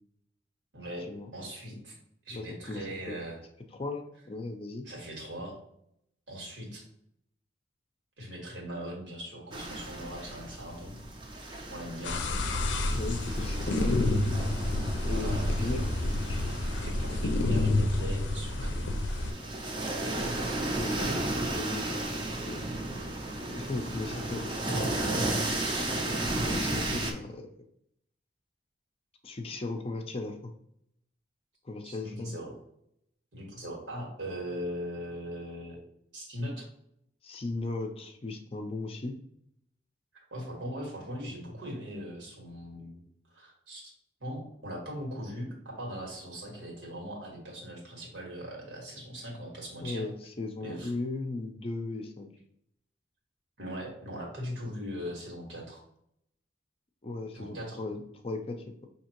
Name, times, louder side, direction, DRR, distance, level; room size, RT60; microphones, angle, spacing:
voice 1, 0.7-1.9 2.2-3.4 4.8-5.6 6.3-6.8 8.2-11.0 11.7-12.2 15.1-15.7 16.8-18.8 31.8-32.5 33.3-35.8 36.1-36.7 40.1-43.0 43.3-43.9 44.2-50.0 50.6-50.9 53.6-55.8 57.3-57.8, equal, 85° right, -2 dB, 1.6 m, -40 dB
voice 2, 2.3-3.2 3.8-4.9 12.9-14.4 15.0-15.8 20.6-21.1 21.6-22.0 22.5-22.6 23.5-25.7 26.4-27.5 29.2-30.5 31.6-32.4 37.2-39.1 49.8-52.3 57.0-58.0 58.2-58.9, left 2 dB, 30° left, 4 dB, 0.5 m, -37 dB
sound 1, 9.5-27.1, right 2 dB, 25° right, 0.6 m, -34 dB
sound 2, 12.0-19.3, left 2 dB, 85° left, 0.5 m, -29 dB
5.4 x 2.8 x 2.9 m, 0.74 s
head